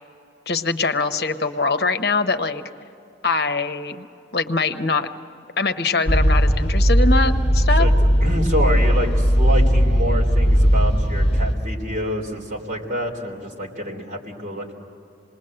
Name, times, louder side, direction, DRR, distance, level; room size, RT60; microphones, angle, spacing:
voice 1, 0.5-2.6 3.2-4.1 4.3-5.1 5.6-7.9, left 3 dB, 60° left, 8 dB, 0.9 m, -23 dB
sound 1, 6.1-11.5, equal, 30° left, 1.6 m, -17 dB
voice 2, 7.8-14.7, equal, 45° right, -1 dB, 3.7 m, -27 dB
27.5 x 21.0 x 7.8 m, 2.7 s
head